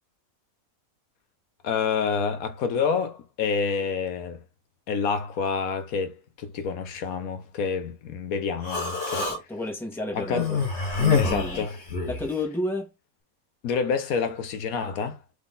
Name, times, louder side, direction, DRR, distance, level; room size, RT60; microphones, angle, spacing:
voice 1, 1.6-4.4 4.9-9.3 10.1-10.5 11.2-11.8 13.6-15.2, left 5 dB, 85° left, 1.3 m, -28 dB
Human voice, 8.6-9.4 10.3-12.3, left 5 dB, 55° left, 1.8 m, -26 dB
voice 2, 9.2-10.7 11.0-11.7 12.1-12.9, left 1 dB, ahead, 1.2 m, -31 dB
3.9 x 3.4 x 3.8 m
omnidirectional pair, 1.5 m